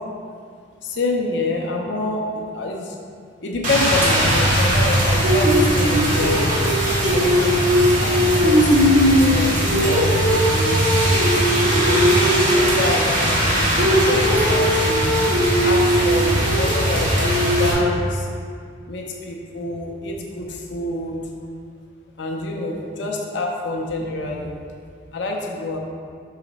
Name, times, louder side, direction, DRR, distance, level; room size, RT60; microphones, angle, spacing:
voice 1, 0.8-2.8 3.4-6.6 7.1-7.6 8.0-10.8 11.7-12.1 12.5-15.2 15.6-18.3 18.9-21.2 22.2-24.6 25.1-25.8, left 2 dB, 65° left, 0 dB, 0.6 m, -27 dB
Rain, 3.6-17.7, equal, 45° right, 1.3 m, -18 dB
5.7 x 4.1 x 4.0 m, 2.2 s
head